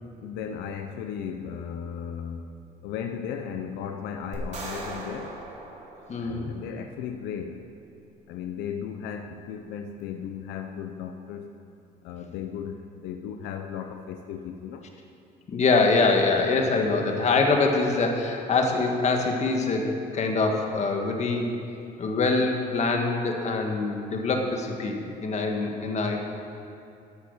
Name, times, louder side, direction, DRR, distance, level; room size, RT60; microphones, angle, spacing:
voice 1, 0.2-2.5 2.8-5.4 6.2-7.7 8.3-11.5 12.0-14.9, left 8 dB, 90° left, 5 dB, 0.7 m, -36 dB
sound 1, 4.3-6.7, right 2 dB, 45° right, 3.3 m, -39 dB
voice 2, 6.1-6.5 15.5-21.5 22.0-26.2, left 3 dB, 40° left, 3 dB, 1.7 m, -24 dB
12.5 x 8.3 x 6.5 m, 2.6 s
cardioid pair, 110°, 17 cm